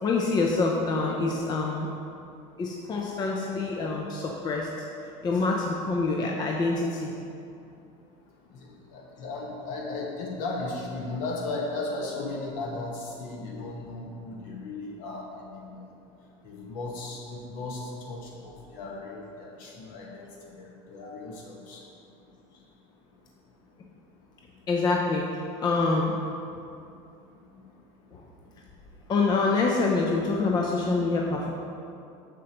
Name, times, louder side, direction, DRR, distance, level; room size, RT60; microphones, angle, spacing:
voice 1, 0.0-1.9 2.6-4.7 5.2-7.1 21.0-21.2 24.7-26.1 28.1-28.2 29.1-31.5, left 3 dB, 30° left, -1 dB, 0.5 m, -26 dB
voice 2, 8.6-15.8 16.4-20.2 20.6-21.8, left 2 dB, 60° left, -2 dB, 1.4 m, -36 dB
6.7 x 6.5 x 3.0 m, 2.6 s
cardioid pair, 135°, 15 cm